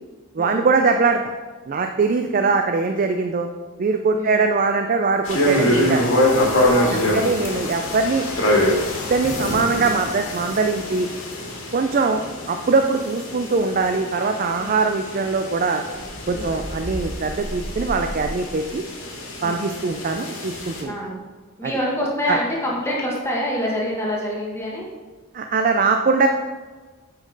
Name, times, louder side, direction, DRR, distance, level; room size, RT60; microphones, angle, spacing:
voice 1, 0.3-1.3 1.7-3.5 3.8-6.0 6.9-8.3 9.1-11.1 11.7-12.2 12.5-15.8 16.3-18.8 19.4-20.9 21.6-21.7 22.3-22.4 25.3-26.3, right 4 dB, 40° right, 5 dB, 0.3 m, -21 dB
voice 2, 4.1-4.4 6.7-7.2 14.6-14.8 16.3-16.5 19.4-19.7 20.8-21.2 21.6-24.9, equal, 10° left, -3 dB, 1.3 m, -26 dB
sound 1, 5.2-20.8, left 1 dB, 70° left, 1.9 m, -25 dB
sound 2, 15.9-18.7, equal, 65° right, 2.3 m, -33 dB
9.0 x 5.2 x 3.9 m, 1.4 s
head